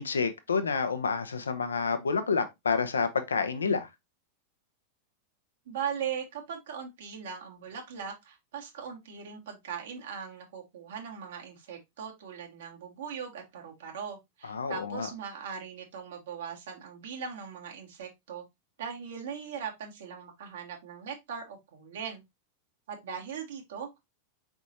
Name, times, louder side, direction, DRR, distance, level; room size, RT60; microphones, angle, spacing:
voice 1, 0.0-3.9 14.5-15.1, left 5 dB, 70° left, 0.6 m, -29 dB
voice 2, 5.7-18.4 18.8-22.2 22.9-24.0, right 7 dB, 60° right, 1.5 m, -39 dB
5.0 x 3.5 x 2.8 m
figure-of-eight pair, 90°, 0 cm